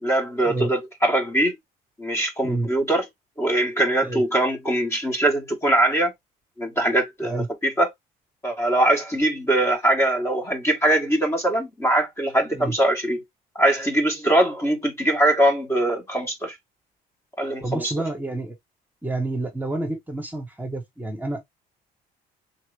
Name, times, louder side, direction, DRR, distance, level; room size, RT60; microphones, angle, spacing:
voice 1, 0.0-1.6 2.0-3.0 3.4-6.1 6.6-7.9 8.4-13.2 13.5-16.5 17.4-17.9, right 1 dB, 15° left, 1.5 m, -22 dB
voice 2, 17.6-18.5 19.0-21.4, right 2 dB, 10° right, 1.4 m, -29 dB
3.8 x 2.9 x 3.3 m
cardioid pair, 110°, 17 cm